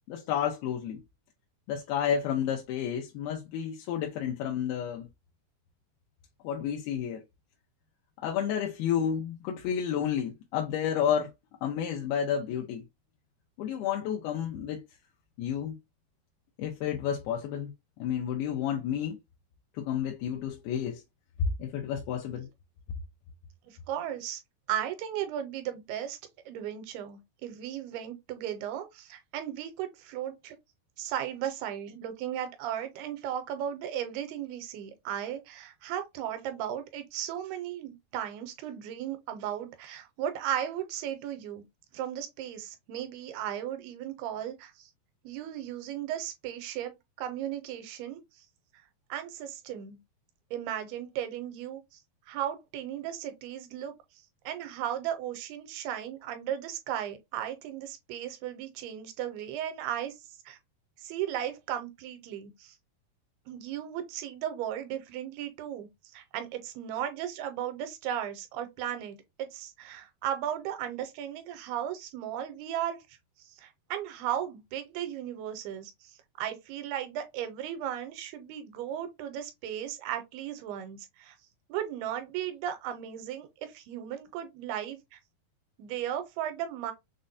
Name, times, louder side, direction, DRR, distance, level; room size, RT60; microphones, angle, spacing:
voice 1, 0.1-1.0 1.7-5.1 6.4-7.2 8.2-11.3 11.6-12.8 13.6-14.8 15.4-15.8 16.6-17.7 18.0-19.2 19.7-21.0 21.6-22.5, left 9 dB, 85° left, 2.5 m, -31 dB
voice 2, 23.7-24.4 24.7-26.2 26.5-30.6 31.0-41.6 41.9-44.9 45.2-48.2 49.1-50.0 50.5-51.8 52.3-53.9 54.5-60.2 60.5-60.6 61.0-62.7 63.5-73.0 73.5-76.1 76.4-81.4 81.7-85.2 85.8-86.9, right 10 dB, 85° right, 2.7 m, -36 dB
6.4 x 2.2 x 2.5 m
omnidirectional pair, 4.5 m